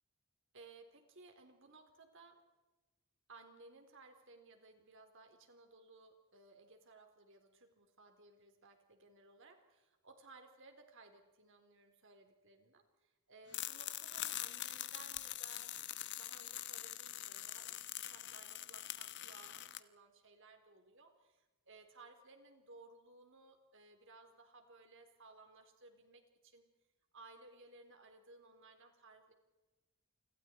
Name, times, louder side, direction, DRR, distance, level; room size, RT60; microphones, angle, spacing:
voice 1, 0.5-2.4 3.3-26.7 27.1-29.3, right 3 dB, 60° right, 5 dB, 4.3 m, -60 dB
sound 1, 13.5-19.8, left 13 dB, 55° left, 1.2 m, -44 dB
29.0 x 26.5 x 4.8 m, 1.1 s
head